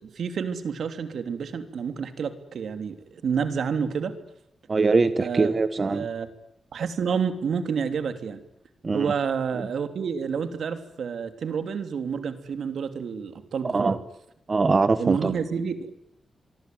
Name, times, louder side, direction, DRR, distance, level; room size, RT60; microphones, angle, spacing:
voice 1, 0.0-4.1 5.2-5.5 5.9-6.3 6.7-8.4 8.9-14.0 15.0-15.9, right 6 dB, 75° right, 9 dB, 3.2 m, -29 dB
voice 2, 4.7-6.1 8.8-9.1 9.5-9.7 13.6-14.0 14.5-15.3, right 4 dB, 35° right, 13 dB, 1.3 m, -22 dB
24.5 x 24.5 x 9.4 m, 0.80 s
wide cardioid pair, 105°, 0 cm